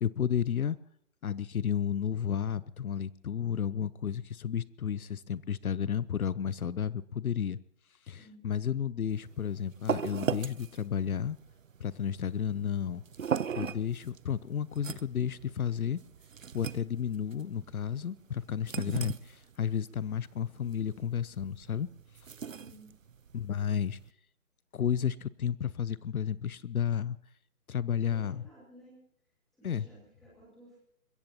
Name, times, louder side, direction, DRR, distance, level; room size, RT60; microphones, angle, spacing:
voice 1, 0.0-0.8 1.2-7.6 8.1-11.4 11.8-13.0 13.6-16.0 16.5-19.1 19.6-21.9 23.3-24.0 24.7-27.2 27.7-28.4 29.6-29.8, left 8 dB, 75° left, 20 dB, 0.7 m, -32 dB
voice 2, 8.1-8.5 22.6-22.9 28.1-29.0 29.5-30.8, right 1 dB, ahead, -8 dB, 2.1 m, -55 dB
sound 1, 9.1-24.1, right 7 dB, 60° right, 0.7 m, -39 dB
30.0 x 16.0 x 2.9 m, 0.71 s
hypercardioid pair, 180°, 44 cm